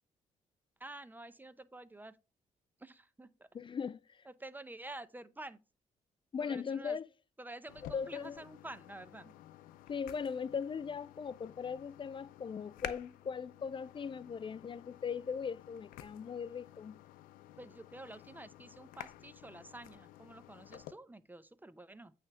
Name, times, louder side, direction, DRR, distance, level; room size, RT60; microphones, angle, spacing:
voice 1, 0.8-2.2 2.8-3.5 4.3-5.6 6.4-7.0 7.4-9.3 17.6-22.1, right 2 dB, 15° right, 0.7 m, -49 dB
voice 2, 3.5-4.2 6.3-7.1 7.9-8.4 9.9-17.0, left 6 dB, 35° left, 0.4 m, -39 dB
sound 1, 7.7-20.9, left 13 dB, 90° left, 0.5 m, -51 dB
8.7 x 3.4 x 5.6 m
supercardioid pair, 60°, 14 cm